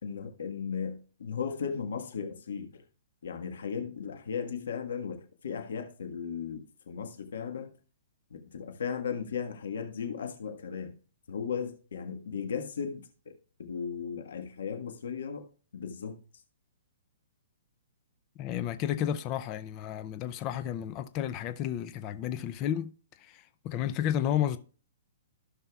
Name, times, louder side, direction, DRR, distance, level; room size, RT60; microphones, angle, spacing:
voice 1, 0.0-2.8 3.2-7.7 8.3-10.9 11.3-13.3 13.6-15.5 15.7-16.2, left 6 dB, 75° left, 1.5 m, -36 dB
voice 2, 18.4-22.9 23.2-24.6, left 10 dB, 25° left, 0.5 m, -32 dB
16.0 x 5.6 x 2.3 m
hypercardioid pair, 170°, 0 cm